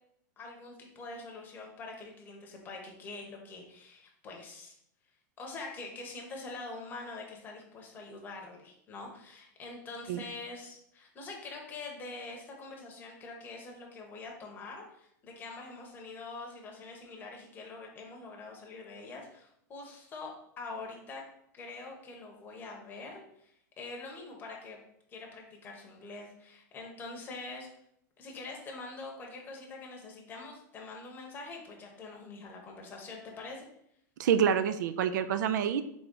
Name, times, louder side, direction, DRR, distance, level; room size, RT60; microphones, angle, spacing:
voice 1, 0.4-4.7 5.4-21.2 21.5-23.5 23.8-24.8 25.1-27.7 28.2-33.7, left 3 dB, 20° left, 0 dB, 0.9 m, -44 dB
voice 2, 34.2-35.8, right 8 dB, 80° right, 11 dB, 0.4 m, -27 dB
3.8 x 3.3 x 3.8 m, 0.73 s
supercardioid pair, 155°, 10 cm